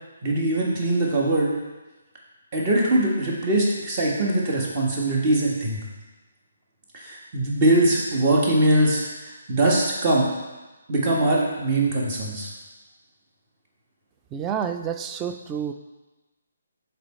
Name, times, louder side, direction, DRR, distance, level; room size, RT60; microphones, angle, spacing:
voice 1, 0.2-1.5 2.5-5.8 6.9-10.3 10.9-12.5, right 1 dB, 30° right, -3 dB, 1.6 m, -22 dB
voice 2, 14.3-15.7, right 8 dB, 15° right, 7 dB, 0.3 m, -29 dB
6.7 x 4.2 x 4.3 m, 1.2 s
figure-of-eight pair, 145°, 0 cm